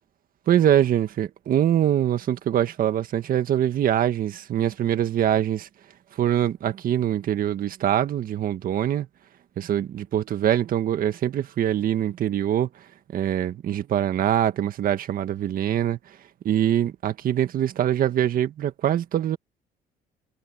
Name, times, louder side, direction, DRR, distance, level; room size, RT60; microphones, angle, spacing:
voice 1, 0.5-5.7 6.1-9.1 9.6-12.8 13.1-16.2 16.4-19.4, right 10 dB, 55° right, 1.7 m, -23 dB
cardioid pair, 110°, 17 cm